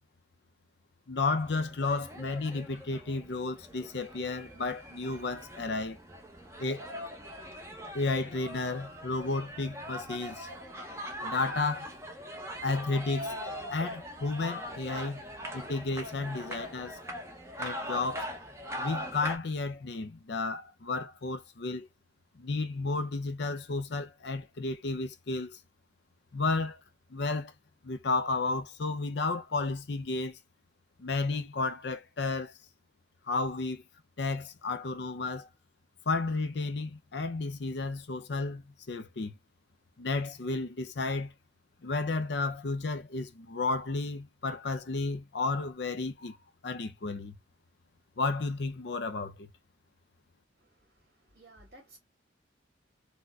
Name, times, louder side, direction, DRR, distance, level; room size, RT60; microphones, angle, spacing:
voice 1, 1.1-6.0 6.6-6.8 7.9-10.5 11.2-11.9 12.6-13.4 13.7-15.2 15.5-17.0 17.6-18.3 18.8-21.9 22.4-25.6 26.3-26.8 27.1-27.5 27.8-30.4 31.0-32.5 33.3-33.8 34.2-35.5 36.1-39.4 40.0-41.3 41.8-46.4 46.6-47.4 48.2-49.5, left 3 dB, 60° left, 0.5 m, -32 dB
sound 1, 1.4-19.4, equal, 15° right, 0.7 m, -41 dB
voice 2, 50.5-52.0, right 1 dB, 55° right, 2.0 m, -57 dB
4.1 x 2.1 x 2.3 m
head